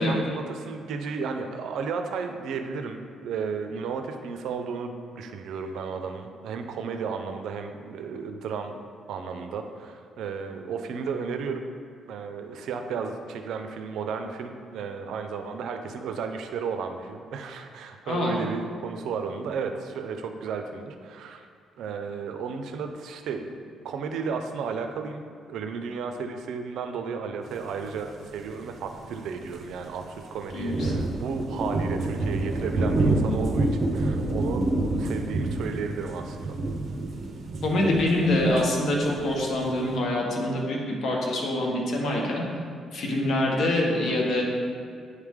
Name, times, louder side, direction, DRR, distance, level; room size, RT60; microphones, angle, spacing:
voice 1, 0.0-8.8 9.1-11.6 12.1-21.5 21.8-25.2 25.5-36.6, right 5 dB, 80° right, 6 dB, 0.5 m, -33 dB
voice 2, 18.0-18.4 30.5-30.9 37.6-42.4 42.9-44.4, left 1 dB, 65° left, -1 dB, 1.2 m, -25 dB
sound 1, 28.3-28.4 28.6-28.7 29.0-29.2 29.5-29.9 30.3-40.0, right 2 dB, 50° right, 0.8 m, -28 dB
9.5 x 3.3 x 3.6 m, 2.3 s
cardioid pair, 90°, 0 cm